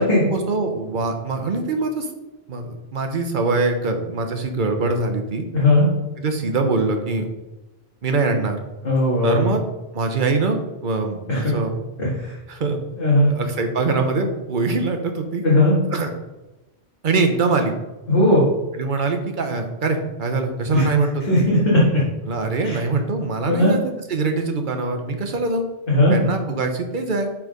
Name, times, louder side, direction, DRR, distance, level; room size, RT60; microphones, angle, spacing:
voice 1, 0.2-2.1 2.5-5.4 6.2-7.3 8.0-8.6 9.2-9.6 9.9-11.7 12.5-12.8 13.3-15.4 15.9-16.1 17.0-17.7 18.8-21.2 22.3-25.6 26.1-27.3, right 3 dB, 50° right, 5 dB, 1.0 m, -23 dB
voice 2, 5.5-5.9 8.8-9.5 11.3-11.7 12.0-12.3 13.0-13.3 15.4-15.7 18.1-18.4 20.7-20.9 21.3-22.0 22.6-22.8 23.5-23.7 25.9-26.1, left 1 dB, 55° left, -7 dB, 2.0 m, -17 dB
5.8 x 4.7 x 5.1 m, 1.0 s
omnidirectional pair, 1.1 m